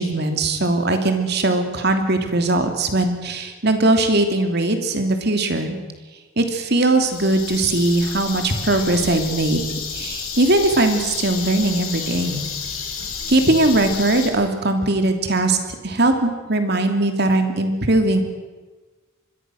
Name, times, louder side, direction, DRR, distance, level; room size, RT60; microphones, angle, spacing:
voice 1, 0.0-5.8 6.4-12.4 13.3-15.6 15.8-18.2, right 2 dB, 50° right, 6 dB, 2.8 m, -20 dB
sound 1, 7.0-14.3, left 6 dB, 85° left, 4.7 m, -31 dB
26.0 x 21.5 x 6.4 m, 1.3 s
head